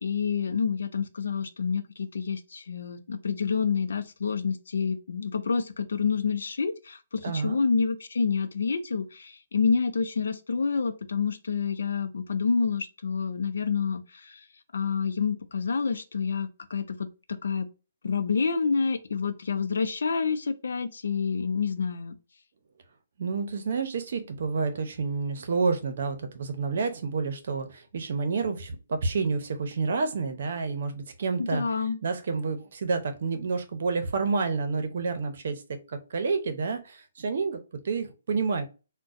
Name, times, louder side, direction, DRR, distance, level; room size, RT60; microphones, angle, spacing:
voice 1, 0.0-14.5 14.7-17.7 18.0-22.2 31.4-32.0, left 5 dB, 80° left, 0.5 m, -28 dB
voice 2, 7.2-7.6 23.2-31.6 32.0-35.6 35.9-37.6 37.8-38.6, right 4 dB, 60° right, 0.8 m, -29 dB
3.8 x 2.2 x 2.6 m
hypercardioid pair, 155°, 0 cm